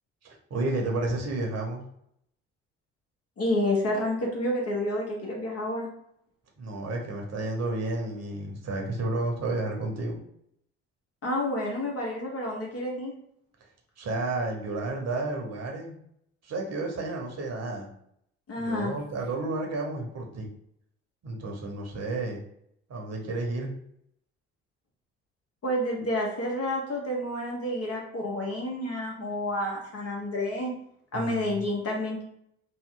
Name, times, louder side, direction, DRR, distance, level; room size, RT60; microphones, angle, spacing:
voice 1, 0.2-1.8 6.6-10.2 14.0-16.0 16.4-17.9 18.6-20.5 21.2-22.4 22.9-23.7 31.1-31.4, right 2 dB, 50° right, 1 dB, 1.1 m, -31 dB
voice 2, 3.4-5.9 11.2-13.1 18.5-19.0 25.6-30.7 31.1-32.2, left 1 dB, 45° left, -1 dB, 1.3 m, -29 dB
3.1 x 2.2 x 3.8 m, 0.72 s
hypercardioid pair, 60°, 32 cm